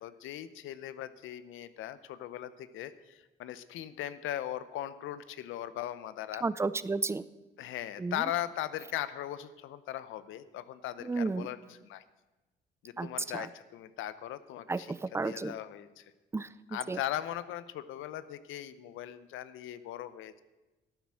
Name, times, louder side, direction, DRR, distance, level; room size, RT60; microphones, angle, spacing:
voice 1, 0.0-6.4 7.6-12.0 12.8-16.1 16.7-20.4, left 12 dB, 85° left, 14 dB, 0.7 m, -39 dB
voice 2, 6.4-7.2 8.0-8.2 11.0-11.5 13.0-13.1 13.3-13.5 14.7-15.5 16.3-16.5 16.9-17.0, right 3 dB, 15° right, 17 dB, 0.4 m, -32 dB
12.0 x 9.2 x 6.3 m, 1.1 s
cardioid pair, 90°, 20 cm